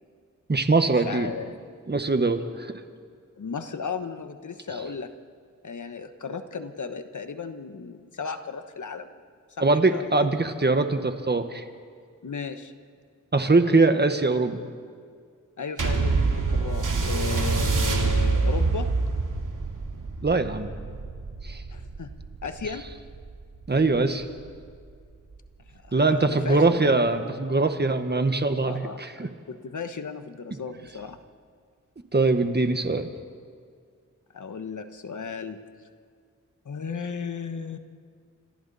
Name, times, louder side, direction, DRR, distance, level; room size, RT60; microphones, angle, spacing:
voice 1, 0.5-1.3 1.9-2.8 9.6-11.6 13.3-14.6 20.2-20.7 21.4-21.6 23.7-24.2 25.9-29.3 32.1-33.1, right 3 dB, 35° right, 8 dB, 1.4 m, -22 dB
voice 2, 1.0-1.6 3.4-5.1 5.6-9.2 9.6-10.3 12.2-12.7 15.6-18.9 21.7-22.1 22.4-22.9 25.7-26.8 28.6-31.2 34.3-35.6 36.6-37.8, left 5 dB, 70° left, 8 dB, 1.3 m, -35 dB
sound 1, 15.8-24.6 25.3-25.4, right 3 dB, 80° right, 2.4 m, -26 dB
29.0 x 26.0 x 4.2 m, 2.1 s
wide cardioid pair, 100°, 31 cm